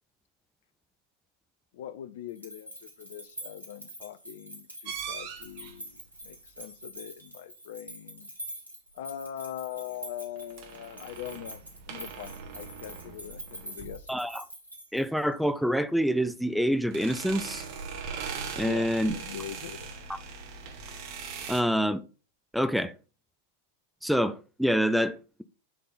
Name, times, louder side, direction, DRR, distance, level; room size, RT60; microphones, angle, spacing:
voice 1, 1.7-8.3 8.9-14.1 18.6-20.0 20.3-20.4, left 11 dB, 55° left, 0.7 m, -42 dB
sound 1, 2.3-15.3, right 1 dB, 80° right, 2.7 m, -45 dB
sound 2, 4.8-5.8 10.4-14.2 16.8-21.6, right 6 dB, 45° right, 1.8 m, -40 dB
voice 2, 14.1-14.4 14.9-17.6 18.6-19.1 21.5-22.0 22.5-22.9 24.0-25.4, equal, ahead, 0.6 m, -26 dB
11.5 x 3.8 x 4.0 m
figure-of-eight pair, 90°, 0 cm